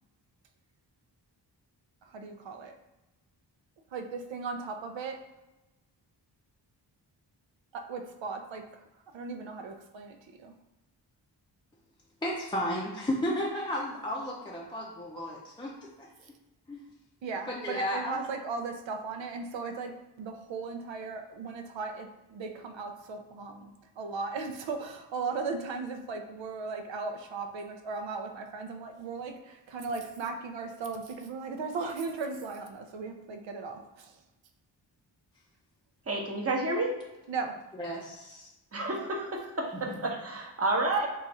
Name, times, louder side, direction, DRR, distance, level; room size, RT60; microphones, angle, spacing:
voice 1, 2.0-2.8 3.9-5.3 7.7-8.9 9.1-10.5 17.2-34.2 37.3-37.6, right 4 dB, 90° right, 5 dB, 0.6 m, -37 dB
voice 2, 12.2-16.1 16.7-16.9 17.5-18.2 37.8-38.5 39.9-40.0, equal, 10° left, -3 dB, 0.5 m, -33 dB
voice 3, 36.1-36.9 38.7-41.1, right 2 dB, 35° right, 0 dB, 0.8 m, -30 dB
3.9 x 2.4 x 4.1 m, 0.99 s
wide cardioid pair, 105°, 43 cm